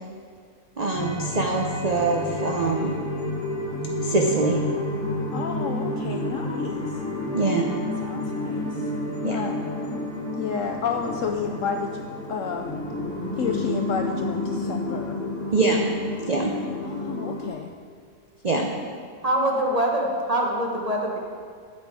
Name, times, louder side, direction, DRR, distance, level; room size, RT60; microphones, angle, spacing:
voice 1, 0.8-2.9 4.0-4.6 7.3-7.7 9.2-9.5 15.5-15.9 16.3-16.5 18.4-18.7, right 3 dB, 45° right, 0 dB, 0.5 m, -23 dB
sound 1, 0.9-17.5, left 1 dB, ahead, 2.7 m, -30 dB
voice 2, 5.3-7.0 8.0-8.9 9.3-10.0 10.3-12.8 13.4-15.2 16.8-17.7 18.6-18.7, left 6 dB, 70° left, 4 dB, 0.8 m, -31 dB
voice 3, 19.2-21.2, right 1 dB, 25° right, -1 dB, 1.2 m, -24 dB
10.0 x 8.2 x 4.8 m, 2.1 s
omnidirectional pair, 1.7 m